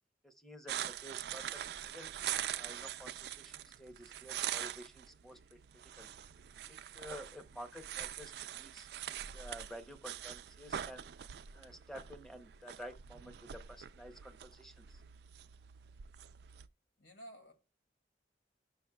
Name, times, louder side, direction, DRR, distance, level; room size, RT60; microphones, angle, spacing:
voice 1, 0.2-2.1 2.5-5.6 6.0-6.1 6.7-11.0 11.5-15.0, equal, ahead, 0.7 m, -51 dB
sound 1, 0.7-16.7, right 11 dB, 60° right, 0.3 m, -44 dB
voice 2, 17.0-17.5, right 1 dB, 80° left, 2.2 m, -52 dB
12.0 x 6.2 x 2.2 m
head